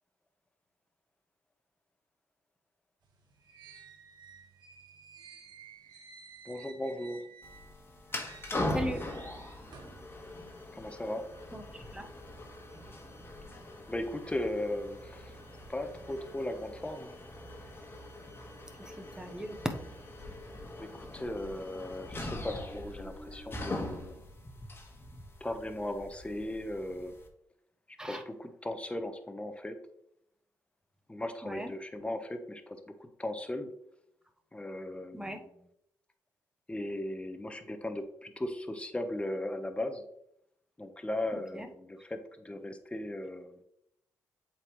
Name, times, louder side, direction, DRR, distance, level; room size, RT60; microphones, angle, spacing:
sound 1, 3.0-7.8 8.1-10.0, right 6 dB, 70° right, 1.3 m, -54 dB
voice 1, 6.4-7.3 10.7-11.3 13.9-15.3 15.7-17.1 20.8-24.1 25.4-27.1 28.0-29.8 31.1-33.7 34.5-35.4 36.7-40.0 40.8-43.5, left 1 dB, 15° left, 7 dB, 1.0 m, -37 dB
sound 2, 7.4-27.3, left 1 dB, 30° left, 1.5 m, -42 dB
voice 2, 8.4-9.0 11.5-12.1 18.8-19.7 28.0-28.2 31.4-31.7 35.1-35.4 41.3-41.7, equal, 10° right, 5 dB, 1.1 m, -38 dB
7.6 x 4.4 x 3.1 m, 0.75 s
supercardioid pair, 55°, 8 cm